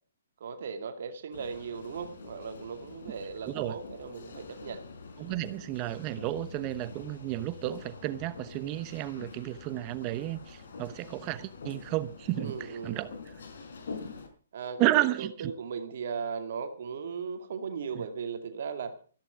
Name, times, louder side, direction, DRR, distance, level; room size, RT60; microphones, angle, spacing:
voice 1, 0.4-4.8 12.4-13.0 14.5-18.9, right 6 dB, 60° right, 2.2 m, -37 dB
sound 1, 1.3-14.3, left 4 dB, 70° left, 4.7 m, -46 dB
voice 2, 3.4-3.7 5.2-13.1 14.8-15.5 17.9-18.0, right 16 dB, 30° right, 0.9 m, -32 dB
14.5 x 13.5 x 5.2 m
hypercardioid pair, 140°, 0 cm